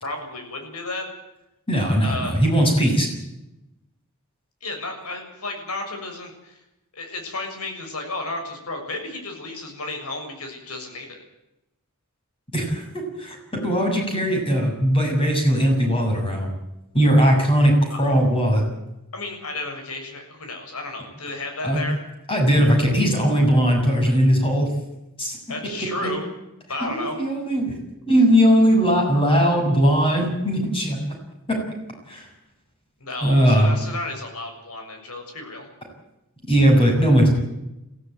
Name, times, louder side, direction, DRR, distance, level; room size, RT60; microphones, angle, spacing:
voice 1, 0.0-1.1 2.0-2.3 4.6-6.6 6.9-11.2 17.9-18.0 19.1-22.0 25.5-26.3 26.7-27.2 33.0-35.7, left 2 dB, 80° left, 4 dB, 6.9 m, -32 dB
voice 2, 1.7-3.1 12.5-16.5 16.9-18.6 21.6-21.8 22.3-24.7 25.2-25.4 26.0-26.1 26.9-27.7 28.1-31.0 31.5-31.6 32.1-32.3 33.2-33.7 36.5-37.3, equal, 25° left, 2 dB, 7.0 m, -19 dB
22.5 x 16.0 x 9.2 m, 0.90 s
head